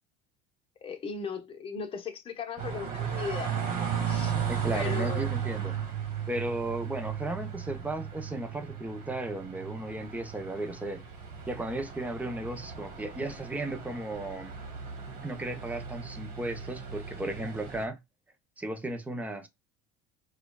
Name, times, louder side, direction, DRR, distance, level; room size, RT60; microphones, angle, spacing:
voice 1, 0.8-3.5 4.1-4.4 4.7-5.3, left 6 dB, 30° left, 0.9 m, -37 dB
sound 1, 2.6-17.8, right 8 dB, 50° right, 1.5 m, -36 dB
voice 2, 4.5-5.7 6.3-11.0 11.5-14.6 15.2-18.0 18.6-19.5, right 1 dB, 10° right, 0.7 m, -35 dB
4.8 x 2.4 x 2.3 m
supercardioid pair, 120°, 18 cm